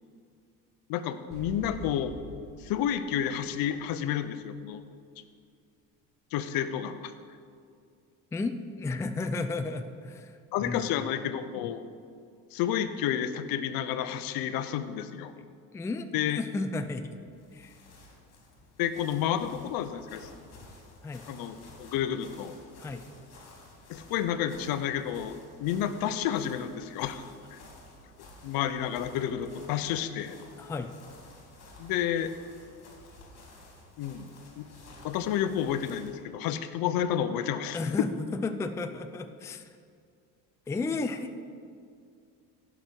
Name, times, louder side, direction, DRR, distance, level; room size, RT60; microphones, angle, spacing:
voice 1, 0.9-2.1 2.6-4.8 6.3-7.1 10.5-11.8 12.5-15.3 16.1-16.4 18.8-20.3 21.3-22.5 23.9-27.2 27.5-27.6 28.4-30.4 31.8-32.3 34.0-34.7 35.0-37.8, left 10 dB, 75° left, 11 dB, 0.8 m, -30 dB
Big Structure Collision Heard from Inside, 1.3-4.3, right 1 dB, 25° right, 2.7 m, -46 dB
voice 2, 8.3-11.2 15.4-15.5 15.7-17.8 21.0-21.3 22.8-23.0 29.9-30.0 30.6-31.0 37.7-39.8 40.7-41.5, left 3 dB, 10° left, 8 dB, 0.3 m, -34 dB
sound 1, 17.1-36.2, left 2 dB, 45° left, 2.9 m, -53 dB
16.0 x 6.2 x 4.5 m, 2.3 s
cardioid pair, 125°, 36 cm